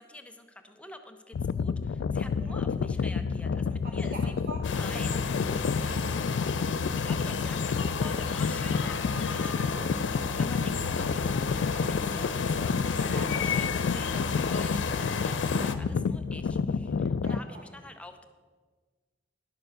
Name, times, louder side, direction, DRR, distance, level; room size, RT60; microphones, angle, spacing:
voice 1, 0.0-4.4 4.7-5.3 7.0-18.3, left 1 dB, 5° left, 6 dB, 0.6 m, -47 dB
sound 1, 1.3-17.4, left 5 dB, 65° left, 0.3 m, -30 dB
voice 2, 3.8-4.7 4.9-5.2 5.7-6.5 12.9-13.3 16.0-16.2 17.2-17.6, right 2 dB, 50° right, 3 dB, 0.7 m, -44 dB
sound 2, 4.6-15.7, left 5 dB, 85° left, 0.7 m, -33 dB
11.0 x 6.9 x 6.4 m, 1.5 s
head